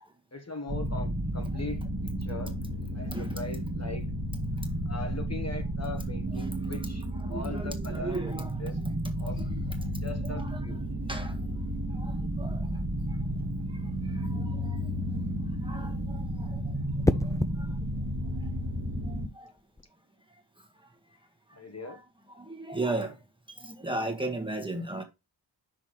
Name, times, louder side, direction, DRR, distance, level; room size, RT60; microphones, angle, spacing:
voice 1, 0.3-1.8 2.2-2.5 2.9-4.0 4.8-8.7 9.2-9.4 10.0-10.8 21.5-22.0, left 3 dB, 35° left, 1.4 m, -40 dB
sound 1, 0.7-19.3, right 1 dB, 50° right, 1.6 m, -32 dB
voice 2, 3.1-3.4 5.0-5.4 6.4-6.7 7.1-9.7 10.2-10.6 11.1-11.4 11.9-12.7 13.1-13.2 13.7-14.8 15.1-15.3 15.6-16.8 17.2-17.8 19.0-19.5 21.8-22.0 22.3-23.2 23.6-25.0, right 2 dB, 10° right, 1.5 m, -37 dB
sound 2, 14.2-14.6 17.0-17.6 19.6-19.8, left 2 dB, 10° left, 0.4 m, -28 dB
6.1 x 3.5 x 4.7 m
wide cardioid pair, 75°, 44 cm